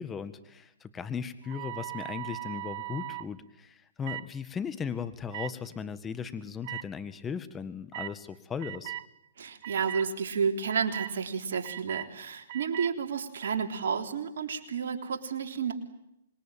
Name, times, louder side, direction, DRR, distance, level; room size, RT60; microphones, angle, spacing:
voice 1, 0.0-8.9, left 6 dB, 15° left, 12 dB, 1.7 m, -37 dB
sound 1, 1.4-3.3 4.0-4.3 5.3-5.5 6.6-6.8 7.9-8.1 8.6-9.1 9.6-10.1 10.7-11.1 11.6-12.1 12.5-12.9, right 15 dB, 45° right, 1.0 m, -38 dB
voice 2, 9.4-15.7, right 6 dB, 65° right, 5 dB, 3.5 m, -31 dB
26.5 x 22.0 x 9.2 m, 0.84 s
hypercardioid pair, 130°, 0 cm